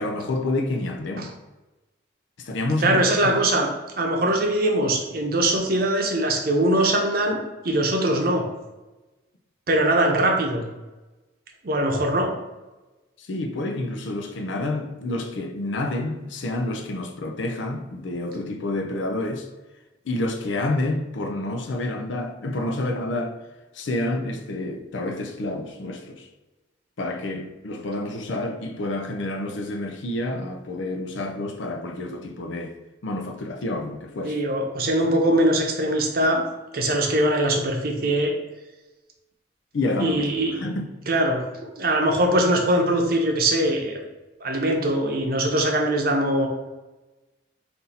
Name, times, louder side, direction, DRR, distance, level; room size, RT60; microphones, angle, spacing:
voice 1, 0.0-1.3 2.4-3.0 13.2-19.5 20.0-23.4 23.7-26.3 27.0-32.7 33.0-34.4 39.7-40.9, left 2 dB, 75° left, 0.5 m, -28 dB
voice 2, 2.8-3.7 4.0-7.4 7.6-8.4 9.7-10.6 11.6-12.4 34.2-36.4 36.7-38.3 40.0-40.7 41.1-41.4 41.8-44.0 44.4-46.5, right 1 dB, 50° right, 0.7 m, -22 dB
4.2 x 2.7 x 4.0 m
head